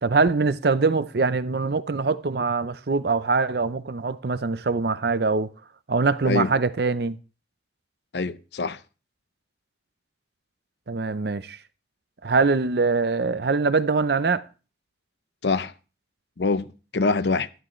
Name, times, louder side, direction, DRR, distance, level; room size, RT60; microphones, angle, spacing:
voice 1, 0.0-5.5 5.9-7.2 10.9-11.6 12.2-14.4, right 4 dB, 60° right, 0.6 m, -23 dB
voice 2, 8.1-8.8 15.4-15.7 16.4-17.5, left 3 dB, 70° left, 0.6 m, -25 dB
12.5 x 11.0 x 3.1 m
head